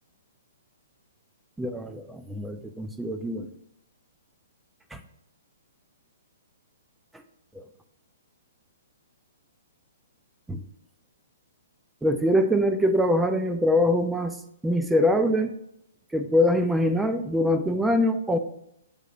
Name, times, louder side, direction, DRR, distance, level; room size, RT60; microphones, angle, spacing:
voice 1, 1.6-3.5 4.9-5.0 7.5-7.6 10.5-10.6 12.0-14.4 14.6-15.6 16.1-18.4, left 1 dB, 5° right, 7 dB, 0.4 m, -23 dB
7.1 x 2.8 x 5.3 m, 0.77 s
figure-of-eight pair, 120°, 0 cm